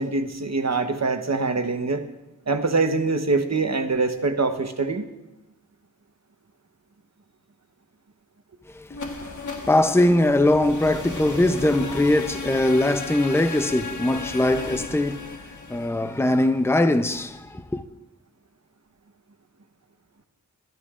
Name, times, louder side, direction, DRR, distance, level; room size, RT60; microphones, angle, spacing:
voice 1, 0.0-2.1 2.5-5.1, right 3 dB, 55° right, 1.0 m, -24 dB
voice 2, 8.7-9.3 9.7-15.3 15.7-17.8, left 1 dB, 10° left, 0.6 m, -21 dB
sound 1, 8.9-16.8, left 3 dB, 70° left, 1.4 m, -35 dB
17.5 x 13.0 x 2.5 m
wide cardioid pair, 60°, 31 cm